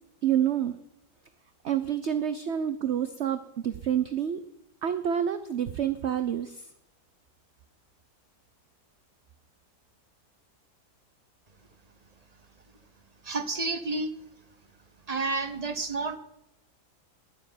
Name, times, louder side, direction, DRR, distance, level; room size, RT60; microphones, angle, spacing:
voice 1, 0.2-0.7 1.6-4.4 4.8-6.7, right 9 dB, 55° right, 11 dB, 0.9 m, -28 dB
voice 2, 13.2-14.1 15.1-16.2, right 3 dB, 25° right, 10 dB, 1.1 m, -30 dB
20.0 x 7.0 x 9.7 m, 0.85 s
omnidirectional pair, 1.7 m